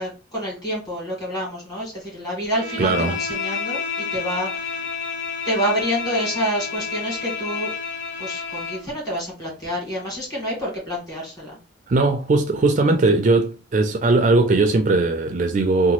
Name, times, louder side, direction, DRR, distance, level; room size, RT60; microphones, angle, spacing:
voice 1, 0.0-4.9 5.4-7.7 8.2-11.6, equal, 20° left, 1.6 m, -28 dB
Bowed string instrument, 2.5-8.9, left 5 dB, 90° left, 0.6 m, -30 dB
voice 2, 2.8-3.1 11.9-15.9, right 3 dB, 40° right, 0.4 m, -19 dB
2.9 x 2.3 x 2.9 m
head